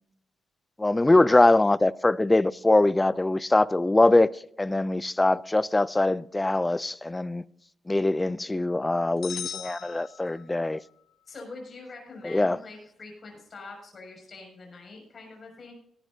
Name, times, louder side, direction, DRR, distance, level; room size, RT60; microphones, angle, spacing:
voice 1, 0.8-4.3 4.6-7.4 7.9-10.8 12.2-12.6, left 2 dB, 15° left, 0.4 m, -22 dB
sound 1, 9.2-10.8, left 9 dB, 75° left, 1.0 m, -39 dB
voice 2, 11.3-15.7, left 3 dB, 45° left, 6.3 m, -44 dB
18.0 x 12.0 x 2.7 m
cardioid pair, 100°, 0 cm